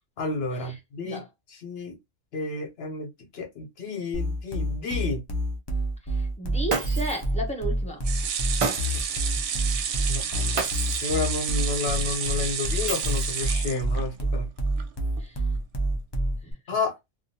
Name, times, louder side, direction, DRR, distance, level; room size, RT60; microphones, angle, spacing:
voice 1, 0.2-1.2 1.6-1.9 2.3-5.2 10.1-10.7 11.0-14.5 16.7-16.9, left 3 dB, 60° left, 1.0 m, -31 dB
sound 1, 4.1-16.5, right 1 dB, 35° left, 0.4 m, -28 dB
voice 2, 6.1-8.0 15.2-15.4 16.4-16.5, right 1 dB, 5° left, 0.8 m, -34 dB
Shatter, 6.7-7.3 8.6-9.2 10.6-11.1 12.9-13.5, right 4 dB, 60° right, 0.3 m, -31 dB
sound 2, 8.0-14.4 14.8-14.9 15.2-15.3, right 7 dB, 75° right, 0.9 m, -31 dB
2.5 x 2.3 x 2.7 m
omnidirectional pair, 1.3 m